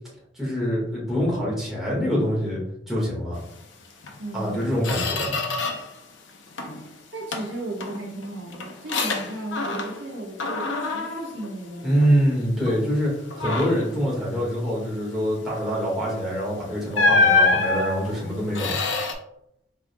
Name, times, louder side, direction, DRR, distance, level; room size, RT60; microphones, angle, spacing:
voice 1, 0.3-2.6 2.9-3.4 4.3-5.4 11.8-18.8, equal, ahead, -7 dB, 1.6 m, -25 dB
Squeak, 4.0-4.2 4.5-6.0 6.3-6.9 7.3-10.1 10.4-12.2 12.7-12.9 13.3-13.9 16.0-16.2 16.9-19.1, left 3 dB, 85° left, 0.7 m, -26 dB
voice 2, 4.2-4.8 6.8-12.1, right 1 dB, 85° right, -2 dB, 1.1 m, -35 dB
4.8 x 3.5 x 2.2 m, 0.73 s
head